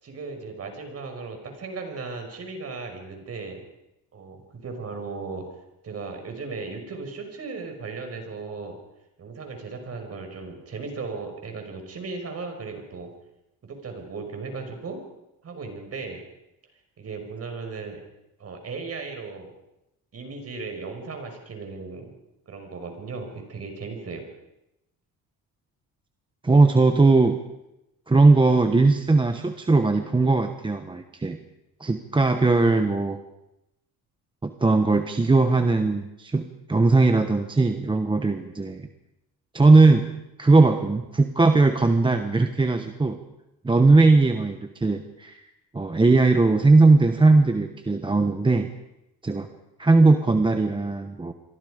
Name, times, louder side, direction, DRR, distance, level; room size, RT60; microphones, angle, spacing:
voice 1, 0.0-3.6 4.1-5.5 5.8-8.8 9.2-13.1 13.6-15.0 15.4-16.2 17.0-18.0 18.4-19.5 20.1-22.1 22.5-24.2, right 4 dB, 40° right, 4 dB, 5.6 m, -36 dB
voice 2, 26.4-27.4 28.1-31.4 31.8-33.2 34.4-38.9 39.5-40.0 40.4-43.2 43.6-45.4 45.7-48.7 49.2-49.5 49.8-51.3, right 3 dB, 10° right, 7 dB, 1.1 m, -19 dB
28.0 x 23.5 x 5.1 m, 0.89 s
cardioid pair, 145°, 39 cm